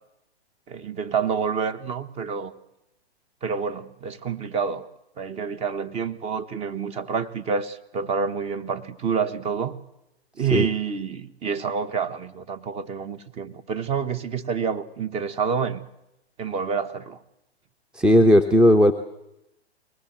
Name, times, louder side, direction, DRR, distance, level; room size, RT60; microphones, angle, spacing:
voice 1, 0.7-2.5 3.4-4.9 5.2-9.8 10.4-15.8 16.4-17.2, right 6 dB, 20° right, 10 dB, 1.4 m, -28 dB
voice 2, 17.9-18.9, left 1 dB, 5° right, 6 dB, 0.7 m, -16 dB
22.5 x 19.5 x 7.6 m, 0.86 s
hypercardioid pair, 130°, 33 cm